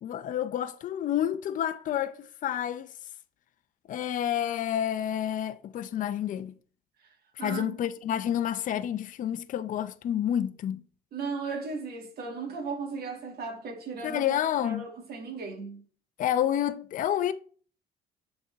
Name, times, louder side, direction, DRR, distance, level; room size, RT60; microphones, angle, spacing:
voice 1, 0.0-2.9 3.9-6.6 7.4-10.8 14.0-14.9 16.2-17.3, left 10 dB, 50° left, 0.5 m, -29 dB
voice 2, 7.4-7.8 11.1-15.8, right 4 dB, 65° right, 2.1 m, -36 dB
7.2 x 4.3 x 4.5 m
cardioid pair, 110°, 17 cm